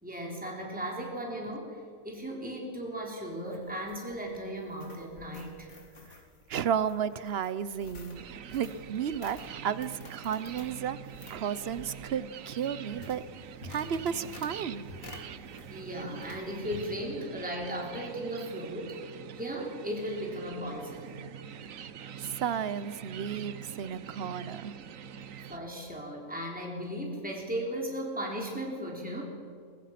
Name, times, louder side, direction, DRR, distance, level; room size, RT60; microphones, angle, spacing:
voice 1, 0.0-5.7 15.7-21.2 22.0-22.1 25.5-29.2, equal, 5° right, -2 dB, 3.7 m, -36 dB
sound 1, 3.3-15.9 16.2-16.9, left 3 dB, 65° left, 2.7 m, -50 dB
voice 2, 6.5-8.2 8.5-11.0 11.3-13.2 13.6-14.9 22.2-24.7, right 8 dB, 50° right, 15 dB, 0.9 m, -33 dB
sound 2, 8.1-25.6, right 8 dB, 65° right, 1.2 m, -45 dB
22.0 x 22.0 x 5.9 m, 2.2 s
omnidirectional pair, 1.5 m